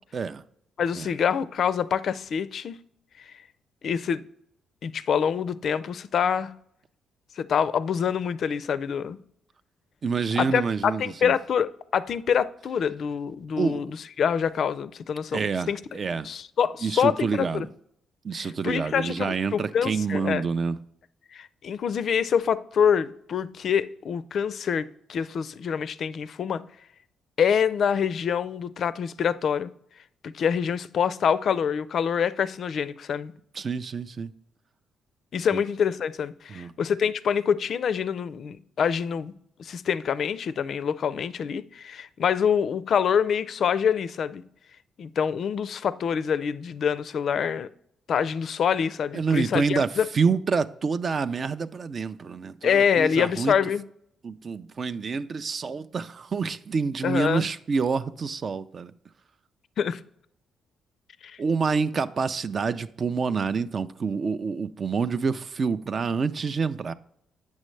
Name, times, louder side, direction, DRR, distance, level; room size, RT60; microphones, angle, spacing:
voice 1, 0.8-2.8 3.8-4.2 4.8-6.5 7.4-9.2 10.4-15.8 16.2-17.7 18.3-20.4 21.3-26.6 27.4-29.7 30.2-33.3 35.3-39.3 39.6-44.4 45.0-47.7 48.1-50.1 52.6-53.8 57.0-57.5 59.8-60.0 61.2-61.4, left 7 dB, 60° left, 0.4 m, -26 dB
voice 2, 10.0-11.3 13.6-13.9 15.3-16.3 16.8-17.7 18.2-20.8 33.5-34.3 35.5-35.6 36.5-36.7 49.1-49.9 50.1-53.6 54.2-58.9 61.4-66.9, right 5 dB, 45° right, 0.4 m, -27 dB
8.3 x 6.3 x 3.2 m
cardioid pair, 90°, 0 cm